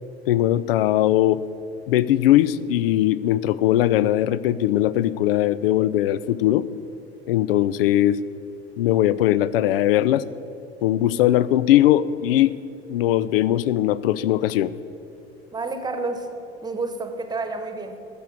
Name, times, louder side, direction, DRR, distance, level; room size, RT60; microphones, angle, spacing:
voice 1, 0.3-1.4 1.9-6.7 7.3-8.2 8.8-10.2 10.8-12.5 12.9-14.7, left 13 dB, 60° left, 17 dB, 0.5 m, -20 dB
voice 2, 15.5-16.3 16.6-18.0, right 3 dB, 10° right, 8 dB, 1.2 m, -29 dB
13.5 x 7.0 x 8.2 m, 2.7 s
figure-of-eight pair, 70°, 32 cm